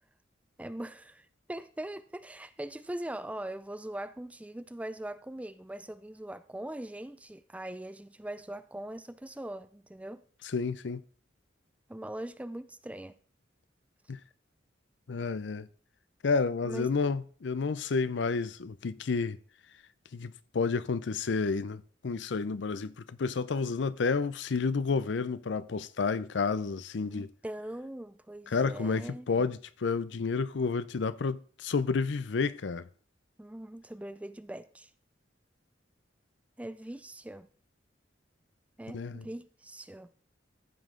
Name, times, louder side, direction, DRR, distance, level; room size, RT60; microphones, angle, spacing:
voice 1, 0.6-10.2 11.9-13.2 16.6-16.9 27.0-29.5 33.4-34.9 36.6-37.5 38.8-40.1, right 1 dB, 5° right, 0.4 m, -41 dB
voice 2, 10.5-11.0 14.1-14.2 15.1-15.7 16.2-19.4 20.1-27.3 28.5-32.8 38.9-39.2, left 4 dB, 70° left, 0.5 m, -30 dB
14.5 x 5.5 x 3.7 m
head